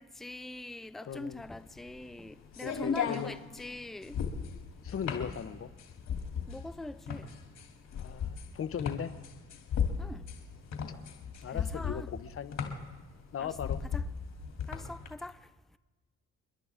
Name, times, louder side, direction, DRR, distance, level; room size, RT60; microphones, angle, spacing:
voice 1, 0.0-4.2 6.5-7.3 10.0-10.3 11.5-12.1 13.4-13.5 13.9-14.0 14.7-15.5, left 1 dB, ahead, 0.4 m, -43 dB
voice 2, 1.1-1.4 2.6-3.3 4.8-5.7 8.0-9.1 11.4-12.5 13.3-13.9, left 8 dB, 50° left, 0.8 m, -38 dB
sound 1, 1.2-15.1, left 7 dB, 70° left, 2.8 m, -36 dB
30.0 x 11.0 x 3.6 m
cardioid pair, 90°, 30 cm